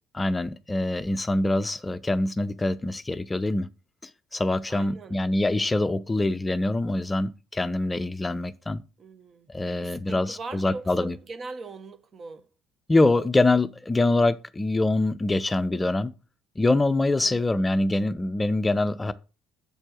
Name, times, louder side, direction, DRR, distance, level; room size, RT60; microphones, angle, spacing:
voice 1, 0.1-3.7 4.0-8.8 9.5-11.2 12.9-16.1 16.6-19.1, left 2 dB, 20° left, 0.5 m, -24 dB
voice 2, 4.7-5.4 9.0-12.5 17.2-17.8, right 3 dB, 40° right, 1.0 m, -41 dB
6.9 x 4.4 x 6.2 m
hypercardioid pair, 55°, 0 cm